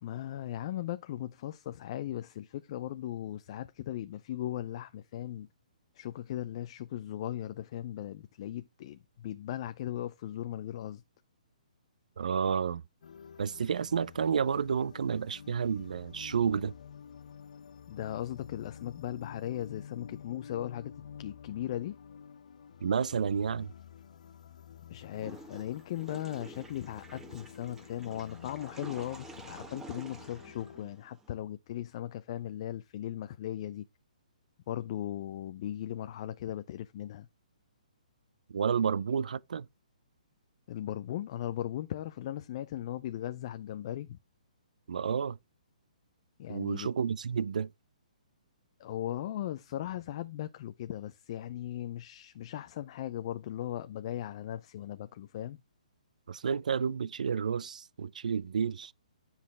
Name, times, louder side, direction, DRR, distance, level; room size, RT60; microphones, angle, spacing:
voice 1, 0.0-5.5 5.9-11.0 17.9-22.0 24.9-33.9 34.7-37.3 40.7-44.2 46.4-46.9 48.8-55.6, left 12 dB, 45° left, 0.6 m, -38 dB
voice 2, 12.2-12.8 13.4-16.7 22.8-23.7 38.5-39.7 44.9-45.4 46.5-47.7 56.3-58.9, right 6 dB, 70° right, 0.4 m, -30 dB
sound 1, 13.0-30.8, left 8 dB, 65° left, 0.9 m, -50 dB
Water / Toilet flush, 25.1-31.3, right 2 dB, 10° right, 1.3 m, -50 dB
9.7 x 5.7 x 3.4 m
hypercardioid pair, 135°, 4 cm